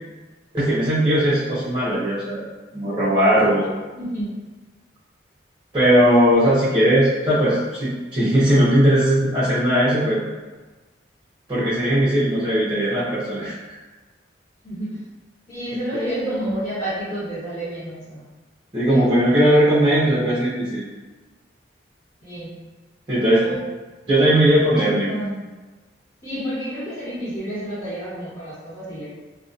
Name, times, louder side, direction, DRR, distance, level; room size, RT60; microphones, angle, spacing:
voice 1, 0.5-2.5 2.7-3.7 5.7-10.2 11.5-13.6 15.9-16.0 18.7-20.9 23.1-23.6 24.1-25.1, equal, 25° right, -10 dB, 0.5 m, -18 dB
voice 2, 3.9-4.3 14.6-15.0 15.5-18.2 18.8-19.1 22.2-22.6 23.4-23.5 24.9-25.4 26.2-29.1, right 1 dB, 50° left, -15 dB, 1.3 m, -30 dB
2.5 x 2.1 x 2.4 m, 1.2 s
head